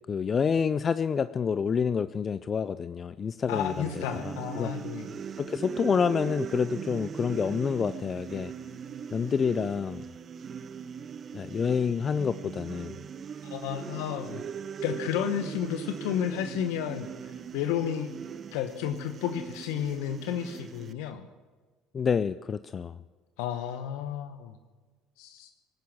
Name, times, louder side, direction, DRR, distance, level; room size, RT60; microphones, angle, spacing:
voice 1, 0.1-4.7 5.4-8.5 9.1-10.0 11.3-12.9 21.9-22.9, left 6 dB, 35° left, 14 dB, 0.5 m, -28 dB
voice 2, 3.5-5.2 13.4-14.4 14.8-17.1 17.5-18.1 18.5-21.3 23.4-24.6 25.2-25.5, left 10 dB, 70° left, 8 dB, 0.9 m, -32 dB
sound 1, 3.5-20.9, right 7 dB, 40° right, 0.7 m, -39 dB
18.5 x 10.5 x 7.3 m, 1.4 s
hypercardioid pair, 65°, 0 cm